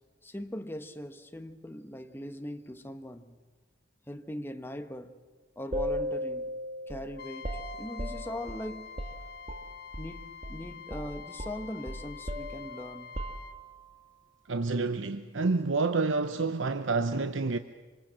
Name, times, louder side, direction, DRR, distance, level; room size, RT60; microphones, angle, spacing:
voice 1, 0.2-3.4 4.1-5.2 5.6-6.5 6.9-8.9 10.0-13.2, left 1 dB, 10° left, 1.2 m, -40 dB
sound 1, 5.7-10.2 10.4-10.6 10.9-13.9, equal, 35° right, 1.8 m, -37 dB
Trumpet, 7.2-13.6, left 7 dB, 55° left, 1.8 m, -46 dB
voice 2, 14.5-17.6, right 3 dB, 80° right, 0.8 m, -28 dB
26.0 x 25.0 x 7.6 m
head